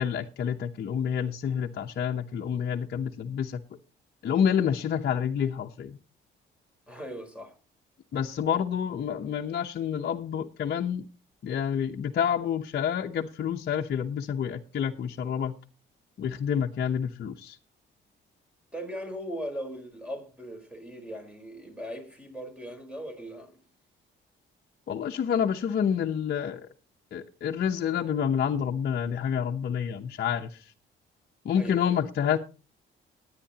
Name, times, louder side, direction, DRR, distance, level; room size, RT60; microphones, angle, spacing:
voice 1, 0.0-3.6 4.2-6.0 8.1-11.1 11.4-15.5 16.2-17.6 24.9-26.7 27.1-30.7 31.4-32.4, left 8 dB, 55° left, 0.9 m, -28 dB
voice 2, 6.9-7.6 18.7-23.6 31.5-32.0, equal, 5° right, 4.2 m, -39 dB
19.5 x 9.8 x 2.9 m
cardioid pair, 90°, 20 cm